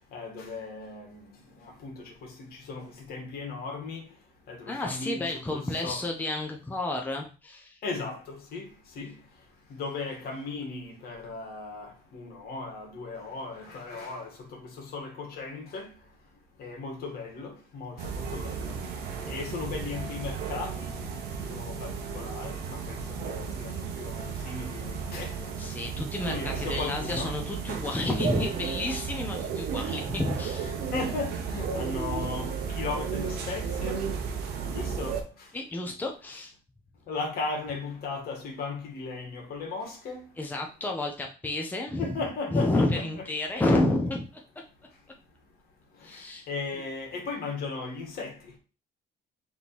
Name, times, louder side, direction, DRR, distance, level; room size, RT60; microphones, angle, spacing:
voice 1, 0.1-1.2 1.8-1.9 2.7-4.0 4.5-6.0 7.8-8.7 8.9-9.1 9.7-14.3 14.8-15.9 16.6-18.7 19.2-20.8 21.5-23.0 23.2-25.7 26.2-27.3 30.6-34.0 34.7-35.2 37.1-40.2 42.0-43.2 46.5-48.3, left 3 dB, 65° left, 1.5 m, -36 dB
voice 2, 4.7-7.8 25.6-30.7 35.5-36.5 40.4-42.1 42.5-44.4 46.0-46.5 46.7-46.8, left 2 dB, 10° left, 0.7 m, -30 dB
sound 1, 18.0-35.2, right 6 dB, 80° right, 0.8 m, -34 dB
3.6 x 3.0 x 4.2 m
cardioid pair, 110°, 17 cm